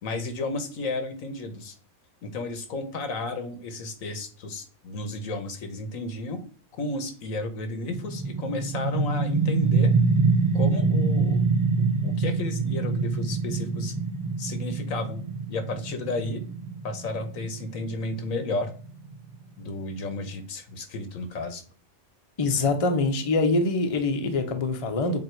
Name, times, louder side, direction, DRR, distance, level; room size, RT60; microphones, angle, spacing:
voice 1, 0.0-1.7 2.2-6.4 6.7-9.9 10.5-11.5 11.8-13.9 14.4-15.2 15.5-16.4 16.8-18.7 19.6-21.6, left 3 dB, 90° left, 8 dB, 1.5 m, -33 dB
sound 1, 7.9-19.3, right 4 dB, 25° right, 0.4 m, -25 dB
voice 2, 22.4-25.2, left 3 dB, 30° left, 6 dB, 0.7 m, -24 dB
7.7 x 2.8 x 4.5 m, 0.40 s
omnidirectional pair, 1.4 m